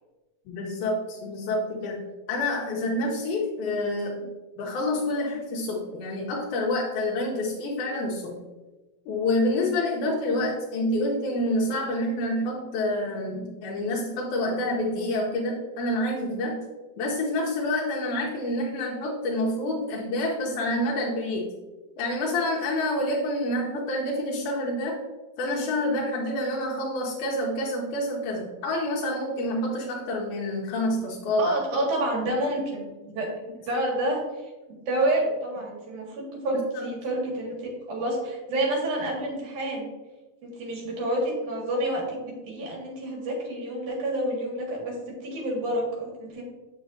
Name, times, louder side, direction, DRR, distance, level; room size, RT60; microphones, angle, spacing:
voice 1, 0.5-4.3 4.6-8.4 9.1-16.7 17.0-21.5 22.0-25.0 25.4-31.5 36.8-36.9, left 1 dB, 85° left, -2 dB, 2.2 m, -28 dB
voice 2, 31.4-33.3 33.6-39.9 40.4-46.4, right 1 dB, 90° right, -3 dB, 3.2 m, -29 dB
7.2 x 6.0 x 2.6 m, 1.2 s
omnidirectional pair, 3.4 m